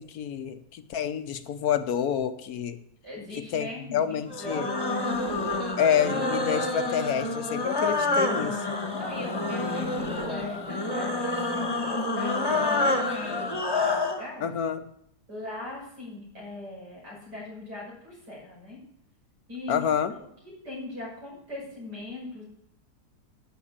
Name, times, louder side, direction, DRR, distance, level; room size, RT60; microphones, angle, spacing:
voice 1, 0.0-2.8 3.3-4.7 5.8-8.6 14.4-14.8 19.7-20.1, left 8 dB, 70° left, 11 dB, 1.3 m, -28 dB
voice 2, 3.0-6.0 8.9-14.5 15.3-18.8 19.5-19.9 20.6-22.4, left 2 dB, 85° right, -4 dB, 7.0 m, -40 dB
sound 1, 4.3-14.2, left 2 dB, 15° left, 1.4 m, -28 dB
11.5 x 6.6 x 8.7 m, 0.74 s
omnidirectional pair, 1.7 m